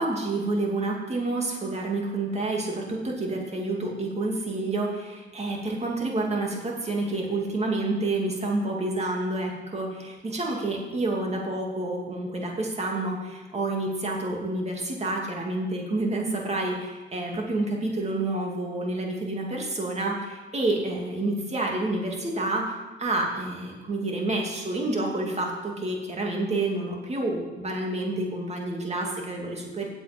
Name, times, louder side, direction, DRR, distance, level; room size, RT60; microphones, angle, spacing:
voice 1, 0.0-22.6 23.0-29.9, right 2 dB, 35° right, 0 dB, 2.6 m, -29 dB
8.0 x 7.9 x 6.8 m, 1.2 s
cardioid pair, 90°, 20 cm